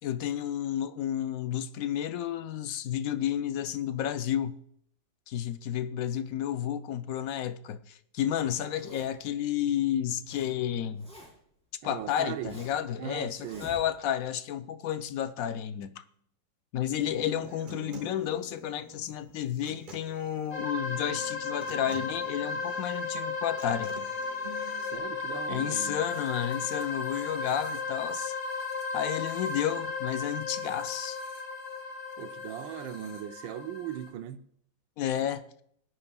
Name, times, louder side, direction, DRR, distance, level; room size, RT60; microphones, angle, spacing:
voice 1, 0.0-4.6 5.3-11.1 11.8-16.0 16.7-23.9 25.5-28.3 28.9-31.2 35.0-35.4, left 10 dB, 70° left, 0.8 m, -31 dB
Zipper (clothing), 8.6-9.3 9.9-10.5 10.8-11.5 12.0-12.9 13.3-14.2, equal, 5° left, 4.4 m, -49 dB
voice 2, 11.8-12.6 13.0-13.7 24.9-26.0 32.2-34.4, right 10 dB, 85° right, 1.5 m, -39 dB
Human voice / Acoustic guitar, 17.0-25.0, right 4 dB, 30° right, 1.2 m, -49 dB
sound 1, 20.5-34.1, left 4 dB, 40° left, 2.1 m, -35 dB
20.0 x 9.7 x 2.3 m
omnidirectional pair, 2.1 m